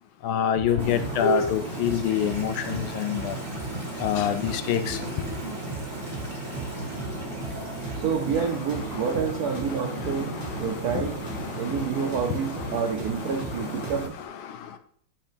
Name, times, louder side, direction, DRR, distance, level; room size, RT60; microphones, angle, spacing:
voice 1, 0.2-3.4 4.0-5.3 8.4-8.5 8.9-9.2 9.5-12.9 13.3-14.8, left 8 dB, 75° left, 9 dB, 1.4 m, -28 dB
sound 1, 0.5-1.1 1.4-1.6 1.8-2.8 3.1-3.3 3.5-4.6 4.8-5.0 5.3-6.3 6.5-6.7 7.0-8.4 8.7-11.4 11.7-11.8 12.1-14.1, right 2 dB, 10° right, 1.2 m, -38 dB
Toilet flush, 0.6-14.2, right 2 dB, 25° right, 1.7 m, -45 dB
sound 2, 0.8-14.1, right 2 dB, 10° left, 2.9 m, -35 dB
voice 2, 7.9-11.2 11.6-14.1, right 7 dB, 80° right, 4 dB, 0.8 m, -28 dB
10.5 x 5.6 x 3.4 m, 0.62 s
omnidirectional pair, 2.4 m